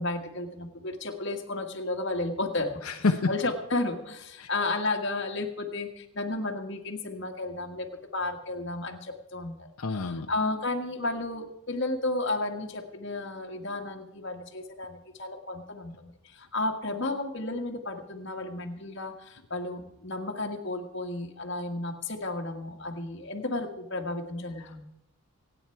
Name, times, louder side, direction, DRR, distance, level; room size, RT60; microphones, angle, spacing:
voice 1, 0.0-2.9 3.3-24.8, left 2 dB, 55° left, 3 dB, 1.8 m, -33 dB
voice 2, 2.8-3.3 4.4-4.5 9.8-10.3 24.6-24.8, left 3 dB, 85° left, 4 dB, 0.9 m, -28 dB
25.5 x 9.3 x 4.6 m, 0.83 s
head